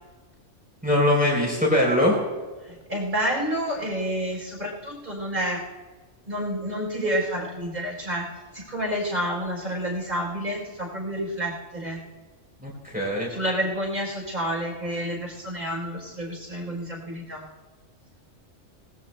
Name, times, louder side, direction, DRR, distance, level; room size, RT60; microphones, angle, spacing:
voice 1, 0.8-2.2 12.6-13.3, left 1 dB, 5° right, -3 dB, 3.5 m, -22 dB
voice 2, 2.7-5.7 6.3-8.3 8.5-12.0 13.3-17.4, equal, 40° right, -2 dB, 4.2 m, -29 dB
22.5 x 19.0 x 2.2 m, 1.3 s
omnidirectional pair, 1.3 m